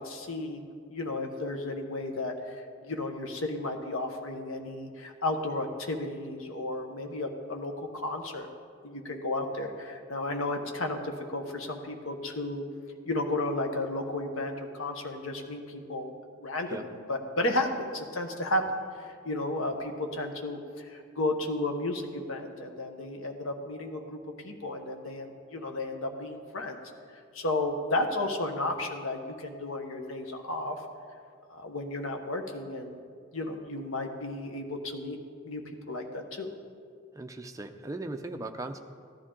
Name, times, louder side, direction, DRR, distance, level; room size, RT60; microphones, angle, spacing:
voice 1, 0.0-8.5 8.8-12.6 13.1-16.1 16.4-26.8 27.3-30.9 31.5-33.0 33.3-35.2 35.4-36.5, left 2 dB, 80° left, 4 dB, 1.0 m, -33 dB
voice 2, 37.1-38.8, right 2 dB, 15° right, 5 dB, 0.5 m, -38 dB
14.5 x 11.0 x 3.8 m, 2.2 s
head